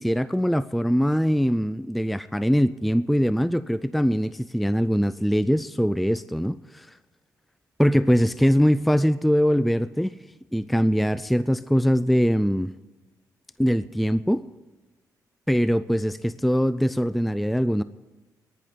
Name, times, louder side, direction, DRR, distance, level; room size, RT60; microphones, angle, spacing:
voice 1, 0.0-6.9 7.8-10.2 10.5-12.7 13.6-14.5 15.5-17.8, equal, ahead, 16 dB, 0.4 m, -22 dB
11.0 x 10.5 x 9.4 m, 1.2 s
cardioid pair, 75°, 7 cm